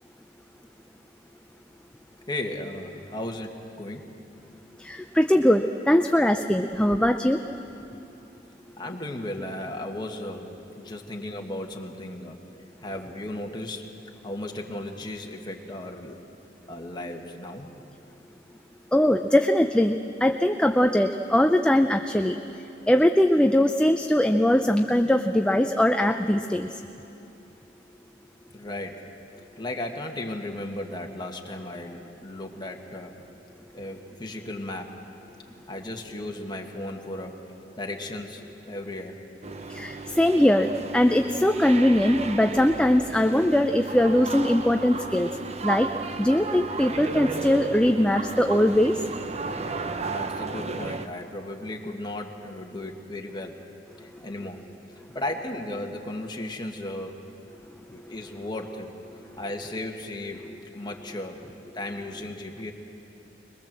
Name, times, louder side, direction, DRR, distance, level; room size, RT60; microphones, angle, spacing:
voice 1, 2.3-4.1 8.8-10.5 10.8-12.4 12.8-13.8 14.2-16.2 16.7-17.7 28.5-29.0 29.6-33.1 33.7-34.9 35.7-37.4 37.8-39.1 50.0-53.5 54.2-54.6 55.1-57.2 57.9-58.9 59.4-60.4 60.7-61.4 61.7-62.7, left 1 dB, 25° left, 1 dB, 1.7 m, -35 dB
voice 2, 4.9-7.4 18.9-22.4 22.9-26.7 39.8-45.3 45.6-45.9 46.2-48.9, left 1 dB, 5° left, 5 dB, 0.5 m, -21 dB
sound 1, 39.4-51.1, right 4 dB, 35° right, 0.8 m, -34 dB
22.0 x 21.5 x 7.5 m, 2.9 s
head